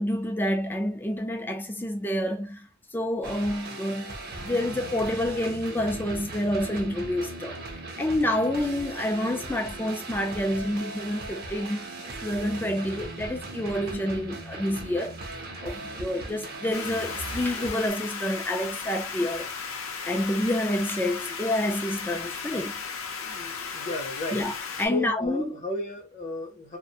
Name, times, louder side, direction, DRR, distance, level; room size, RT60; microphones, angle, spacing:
voice 1, 0.0-4.1 4.4-7.6 8.0-15.2 15.6-19.5 20.0-22.8 24.3-24.5 24.8-25.6, left 1 dB, 10° left, 0.4 m, -28 dB
sound 1, 3.2-17.9, right 2 dB, 45° right, 0.6 m, -38 dB
sound 2, 4.3-8.0, right 3 dB, 90° right, 0.5 m, -48 dB
sound 3, 16.7-24.9, left 5 dB, 75° left, 0.5 m, -35 dB
voice 2, 22.3-22.6 23.2-24.5 24.9-26.8, left 2 dB, 35° left, 0.8 m, -34 dB
2.5 x 2.1 x 2.7 m
head